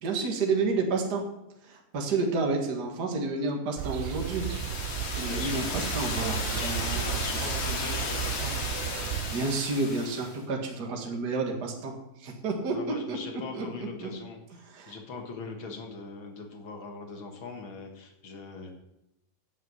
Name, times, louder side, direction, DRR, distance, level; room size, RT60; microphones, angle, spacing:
voice 1, 0.0-1.2 1.6-4.5 5.1-7.2 9.0-14.1 14.7-14.9, right 3 dB, 65° right, 1 dB, 0.9 m, -30 dB
sound 1, 3.8-9.3, right 14 dB, 90° right, 2.7 m, -34 dB
sound 2, 3.9-10.4, left 4 dB, 50° left, 3.0 m, -34 dB
voice 2, 5.2-5.7 6.5-8.5 12.7-18.7, left 4 dB, 70° left, 3 dB, 1.2 m, -41 dB
11.0 x 8.2 x 8.0 m, 0.87 s
omnidirectional pair, 4.8 m